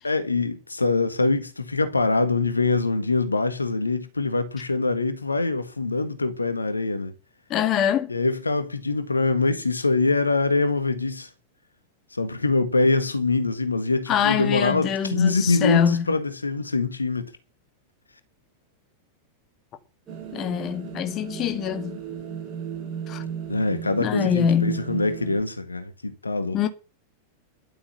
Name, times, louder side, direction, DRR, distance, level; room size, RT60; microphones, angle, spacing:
voice 1, 0.0-7.1 8.1-11.3 12.1-17.3 23.5-26.6, left 3 dB, 80° left, 1.6 m, -24 dB
voice 2, 7.5-8.1 14.1-16.1 20.3-22.0 23.1-23.2 24.0-24.8 26.5-26.7, left 8 dB, 35° left, 2.2 m, -24 dB
sound 1, 20.1-25.4, right 7 dB, 25° right, 7.3 m, -35 dB
12.0 x 8.4 x 7.2 m
figure-of-eight pair, 90°, 0 cm